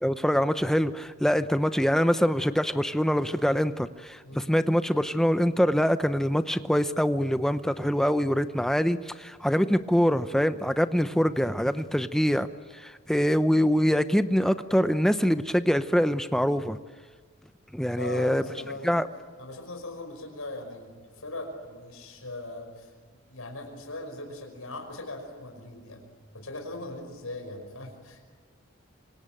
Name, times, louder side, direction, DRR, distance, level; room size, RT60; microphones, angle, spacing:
voice 1, 0.0-12.5 12.7-16.8 17.7-18.4 18.8-19.1, equal, ahead, 11 dB, 0.7 m, -24 dB
voice 2, 17.9-19.1 19.4-22.9 23.3-26.0 26.3-28.2, left 2 dB, 85° left, 3 dB, 5.4 m, -40 dB
26.5 x 25.0 x 9.0 m, 1.5 s
head